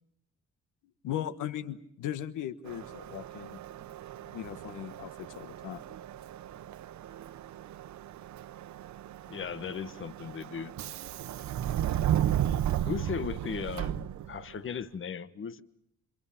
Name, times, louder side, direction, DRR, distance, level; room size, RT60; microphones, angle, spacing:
voice 1, 1.0-3.6 4.3-5.8, left 11 dB, 85° left, 14 dB, 1.4 m, -38 dB
Subway metro underground, 2.7-14.6, right 11 dB, 70° right, 1.0 m, -35 dB
voice 2, 9.3-10.7 12.7-15.6, left 7 dB, 40° left, 15 dB, 1.3 m, -37 dB
28.5 x 27.0 x 7.2 m, 0.71 s
cardioid pair, 90°, 30 cm